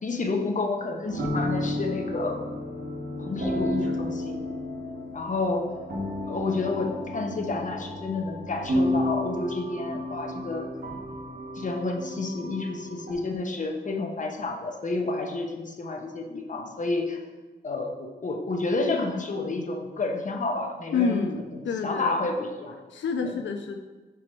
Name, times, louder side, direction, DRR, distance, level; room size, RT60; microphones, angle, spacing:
voice 1, 0.0-2.4 3.2-4.4 5.1-5.7 6.3-10.7 11.5-17.2 17.6-21.3 21.5-22.8 23.2-23.3, left 3 dB, 40° left, 2 dB, 0.8 m, -30 dB
sound 1, 1.1-13.1, left 1 dB, 60° right, 1.5 m, -32 dB
voice 2, 20.9-22.2 22.9-23.8, left 5 dB, 80° left, 5 dB, 0.4 m, -28 dB
5.0 x 4.6 x 4.6 m, 1.3 s
wide cardioid pair, 135°, 19 cm